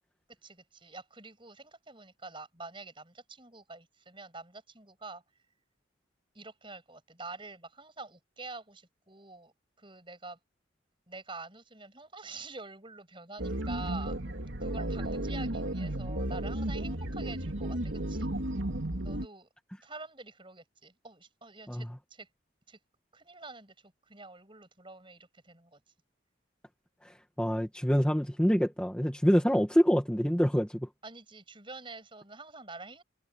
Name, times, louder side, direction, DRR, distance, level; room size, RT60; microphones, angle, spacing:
voice 1, 0.4-5.2 6.3-9.5 9.8-10.4 11.1-14.2 14.6-18.3 19.0-19.5 19.8-22.3 22.7-22.8 23.1-25.8 31.0-33.0, right 3 dB, 25° right, 7.6 m, -47 dB
sound 1, 13.4-19.3, right 1 dB, 75° right, 2.9 m, -33 dB
voice 2, 27.0-30.9, equal, 5° left, 2.0 m, -26 dB
head